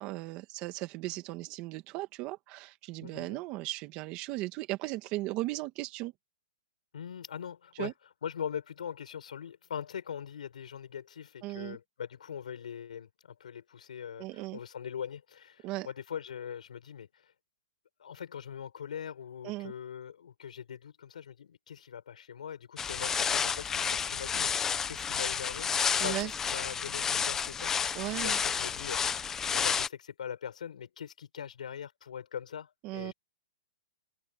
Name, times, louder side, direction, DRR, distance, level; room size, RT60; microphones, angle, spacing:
voice 1, 0.0-6.1 7.8-7.9 11.4-11.8 14.2-14.6 15.6-15.9 19.4-19.7 26.0-26.3 27.9-28.4 32.8-33.1, right 19 dB, 25° right, 1.9 m, -37 dB
voice 2, 3.0-3.4 6.9-7.9 8.2-17.3 18.0-25.7 26.0-27.7 28.2-29.1 29.5-33.1, left 8 dB, 75° left, 6.2 m, -42 dB
sound 1, 22.8-29.9, left 7 dB, 10° left, 1.1 m, -31 dB
hypercardioid pair, 165°, 4 cm